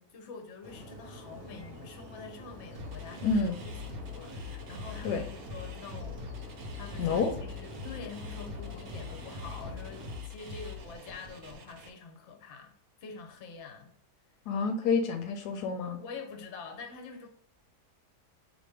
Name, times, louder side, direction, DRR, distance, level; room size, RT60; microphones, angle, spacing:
voice 1, 0.1-6.2 6.8-12.7 13.0-13.9 15.9-17.3, left 5 dB, 55° left, 4 dB, 0.9 m, -46 dB
sound 1, 0.6-10.2, equal, 45° right, 0.9 m, -47 dB
sound 2, 2.7-11.9, left 3 dB, 65° right, 1.1 m, -42 dB
voice 2, 3.2-3.6 5.0-5.2 7.0-7.3 14.5-16.0, left 4 dB, 75° left, 6 dB, 1.1 m, -28 dB
4.2 x 2.8 x 3.4 m, 0.65 s
omnidirectional pair, 1.8 m